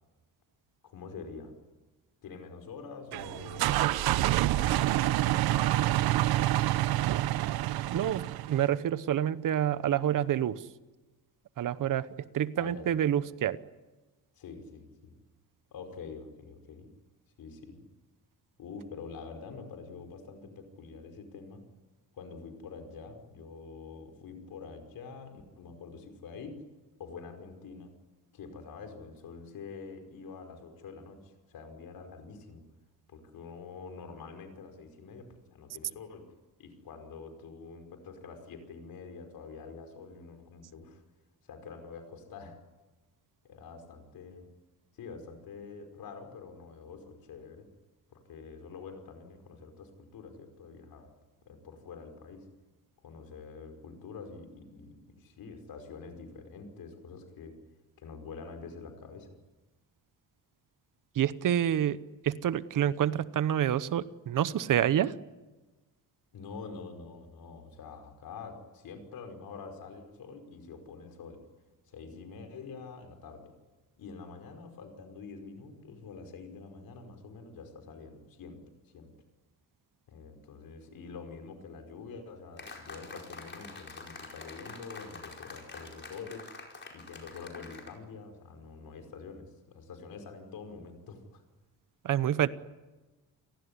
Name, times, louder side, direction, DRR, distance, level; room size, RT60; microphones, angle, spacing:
voice 1, 0.8-1.5 2.2-5.9 6.6-7.2 12.6-13.0 14.4-15.1 15.7-16.9 17.4-17.8 18.6-21.6 22.1-26.6 27.0-27.9 28.3-32.6 33.1-36.3 36.6-41.0 41.5-42.6 43.4-44.5 44.9-47.7 48.1-51.1 51.5-52.5 53.0-57.6 58.0-59.3 66.3-71.4 71.9-73.5 74.0-78.6 78.9-79.1 80.1-86.5 86.9-91.4 92.4-92.5, left 5 dB, 70° left, 6 dB, 5.4 m, -46 dB
sound 1, 3.1-8.7, right 15 dB, 90° right, 0.8 m, -27 dB
voice 2, 7.9-10.6 11.6-12.1 12.3-13.6 61.1-62.0 62.2-65.1 92.0-92.5, right 10 dB, 60° right, 16 dB, 1.0 m, -28 dB
sound 2, 82.6-88.0, left 3 dB, 30° left, 4.9 m, -46 dB
29.0 x 18.0 x 9.8 m, 1.2 s
cardioid pair, 135°, 36 cm